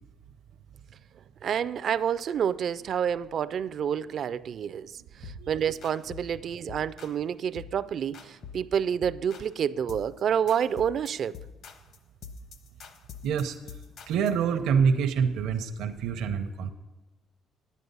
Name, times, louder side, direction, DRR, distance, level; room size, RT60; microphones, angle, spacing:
voice 1, 1.4-4.9 5.2-11.3, right 8 dB, 45° right, 0.3 m, -28 dB
sound 1, 5.2-5.5 5.8-6.3 6.7-7.2 7.6-7.8 8.1-8.7 9.0-9.5 9.9-10.2 10.5-14.4, left 7 dB, 55° left, 0.9 m, -45 dB
voice 2, 13.2-13.5 14.1-16.7, right 6 dB, 75° right, 0.7 m, -26 dB
9.8 x 9.4 x 5.4 m
cardioid pair, 150°, 0 cm